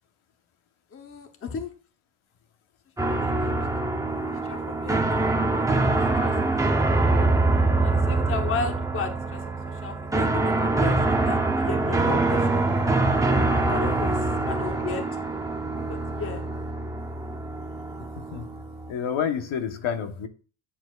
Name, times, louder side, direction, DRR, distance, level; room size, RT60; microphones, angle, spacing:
voice 1, 0.9-1.7 3.0-3.5 3.8-4.1 4.5-5.3 5.6-5.7 6.2-6.3 6.6-7.3 7.8-12.7 13.6-14.2 14.4-15.1 15.9-16.4, left 5 dB, 25° left, 0.9 m, -35 dB
sound 1, 3.0-18.9, right 2 dB, 5° right, 0.6 m, -24 dB
sound 2, 11.6-16.6, right 3 dB, 30° right, 1.8 m, -41 dB
voice 2, 13.8-14.2 18.2-18.5 18.9-20.3, left 7 dB, 70° left, 1.1 m, -30 dB
9.9 x 7.1 x 2.4 m
cardioid pair, 175°, 50 cm